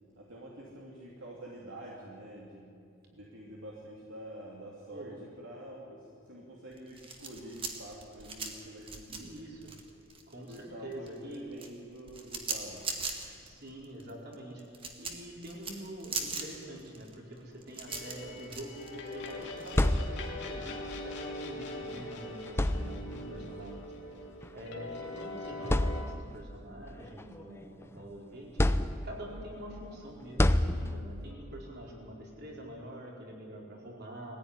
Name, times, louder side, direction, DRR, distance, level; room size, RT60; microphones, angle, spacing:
voice 1, 0.2-2.8 3.1-9.3 10.5-12.9 23.0-23.5, right 1 dB, 65° right, -3 dB, 2.8 m, -47 dB
sound 1, 6.7-10.6 10.9-19.9, right 4 dB, 25° right, 2.0 m, -40 dB
voice 2, 9.1-9.7 10.3-11.6 13.4-14.6 15.0-20.7 21.0-23.9 24.5-28.5 29.0-34.4, right 1 dB, 50° right, -2 dB, 4.7 m, -45 dB
sound 2, 17.9-26.0, left 2 dB, 50° left, 2.6 m, -42 dB
sound 3, 19.4-20.6 21.8-22.0 22.5-23.3 24.4-24.6 25.1-25.2 25.6-26.5 27.0-28.0 28.6-29.4 30.4-31.3, left 1 dB, 10° left, 0.5 m, -29 dB
21.0 x 15.5 x 10.0 m, 2.4 s
head